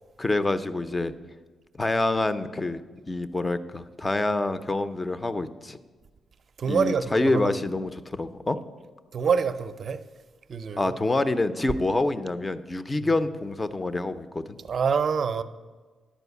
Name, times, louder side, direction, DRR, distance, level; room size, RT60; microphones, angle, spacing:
voice 1, 0.2-1.1 1.7-2.8 3.1-5.8 6.7-8.6 10.8-14.6, left 2 dB, 20° left, 0.5 m, -26 dB
voice 2, 6.6-7.5 9.1-10.0 10.5-10.9 13.0-13.1 14.6-15.4, right 6 dB, 45° right, 0.5 m, -26 dB
10.0 x 5.1 x 8.1 m
wide cardioid pair, 145°, 0 cm